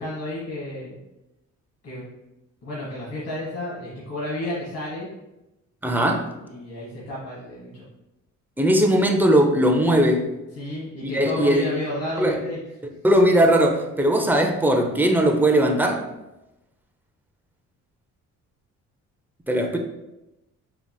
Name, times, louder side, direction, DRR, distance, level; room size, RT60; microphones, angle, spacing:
voice 1, 0.0-1.0 1.8-2.1 2.6-5.1 6.4-7.9 10.5-12.6, left 1 dB, 55° left, 1.2 m, -31 dB
voice 2, 5.8-6.3 8.6-10.3 11.1-11.6 12.2-12.4 13.0-16.0 19.5-19.8, right 1 dB, 5° right, 0.4 m, -19 dB
4.6 x 2.8 x 2.2 m
cardioid pair, 90°, 30 cm